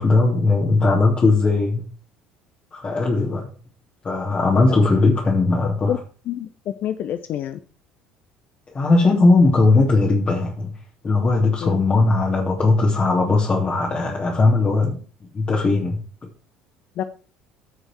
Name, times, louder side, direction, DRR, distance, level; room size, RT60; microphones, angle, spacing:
voice 1, 0.0-1.8 2.7-3.5 4.0-5.9 8.7-10.7 11.0-15.0 15.3-16.0, left 3 dB, 30° left, -3 dB, 3.2 m, -18 dB
voice 2, 6.8-7.6 11.6-11.8 17.0-17.1, left 11 dB, 45° left, 10 dB, 0.8 m, -26 dB
15.5 x 6.4 x 4.6 m, 0.39 s
figure-of-eight pair, 60°, 4 cm